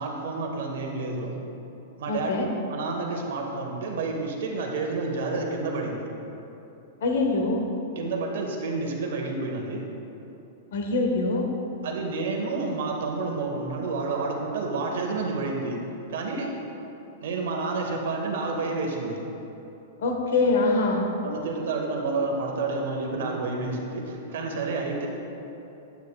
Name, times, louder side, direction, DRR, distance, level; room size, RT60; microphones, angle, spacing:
voice 1, 0.0-1.3 2.0-2.3 2.7-6.0 7.9-9.8 11.8-15.8 16.1-16.5 17.2-19.2 21.2-25.1, right 3 dB, 70° right, 0 dB, 1.1 m, -29 dB
voice 2, 2.1-2.5 7.0-7.6 10.7-11.5 20.0-21.0, left 3 dB, 70° left, 2 dB, 1.0 m, -24 dB
9.0 x 8.2 x 2.3 m, 2.9 s
supercardioid pair, 170°, 0 cm